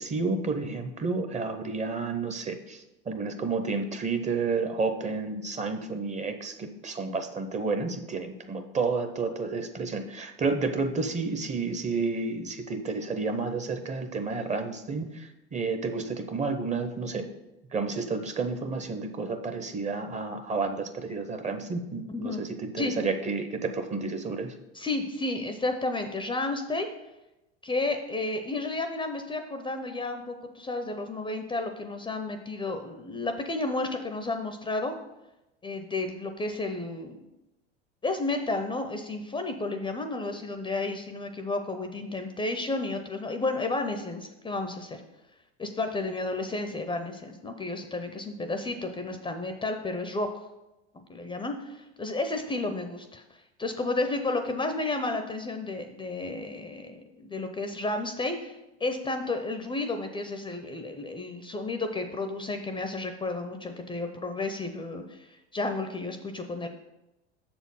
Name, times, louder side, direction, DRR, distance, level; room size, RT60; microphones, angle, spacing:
voice 1, 0.0-17.3 17.7-24.5, right 4 dB, 20° right, 7 dB, 0.7 m, -31 dB
voice 2, 22.1-22.4 22.8-22.9 24.7-26.9 27.6-35.0 35.6-37.2 38.0-45.0 45.6-50.5 51.1-66.7, left 2 dB, 15° left, 6 dB, 0.5 m, -32 dB
6.7 x 4.4 x 5.6 m, 0.96 s
supercardioid pair, 100°, 31 cm